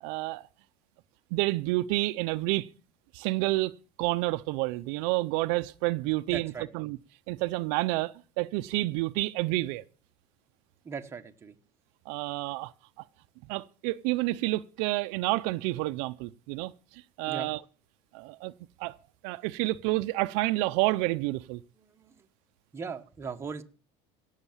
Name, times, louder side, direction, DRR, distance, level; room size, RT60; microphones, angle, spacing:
voice 1, 0.0-0.4 1.3-2.7 3.1-7.0 7.3-9.8 12.1-12.7 13.5-17.6 18.1-18.5 18.8-19.0 19.2-21.6, right 20 dB, 75° right, 0.6 m, -29 dB
voice 2, 6.3-6.7 10.8-11.6 17.3-17.5 21.8-22.3 22.7-23.6, right 5 dB, 15° right, 1.1 m, -39 dB
17.0 x 6.5 x 7.2 m
cardioid pair, 145°, 15 cm